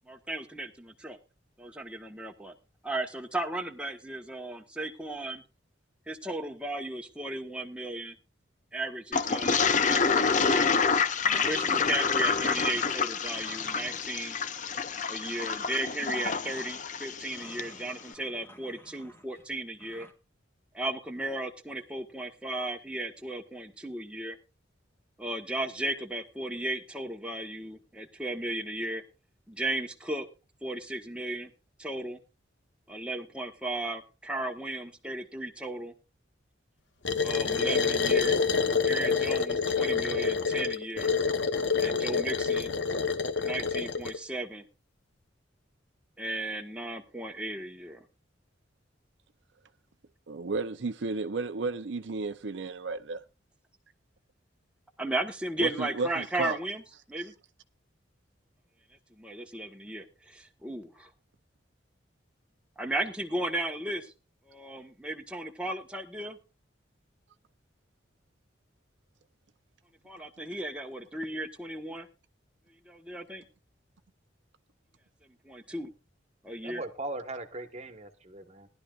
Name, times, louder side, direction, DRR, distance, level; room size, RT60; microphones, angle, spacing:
voice 1, 0.1-1.2 1.6-2.5 2.8-5.4 6.1-8.1 8.7-10.6 11.4-14.4 15.1-20.1 20.7-24.4 25.2-29.0 29.5-30.3 30.6-31.5 31.8-32.2 32.9-35.9 37.2-38.4 38.8-41.1 41.8-42.7 43.4-44.6 46.2-48.0 55.0-56.8 57.1-57.3 59.2-61.1 62.8-64.0 64.5-66.4 70.0-72.1 72.9-73.4 75.5-75.9 76.4-76.8, right 1 dB, 5° right, 1.2 m, -35 dB
Toilet flush, 9.1-17.7, left 5 dB, 40° left, 0.6 m, -28 dB
sound 1, 10.9-12.9 13.2-14.2 15.2-16.9 17.3-19.4 19.8-20.1, equal, 10° left, 1.5 m, -48 dB
sound 2, 37.1-44.2, left 5 dB, 65° left, 0.9 m, -27 dB
voice 2, 50.3-53.2 55.6-56.6 57.2-57.3, right 3 dB, 70° right, 0.6 m, -33 dB
voice 3, 76.6-78.7, right 2 dB, 35° right, 1.3 m, -39 dB
18.5 x 11.5 x 2.4 m
head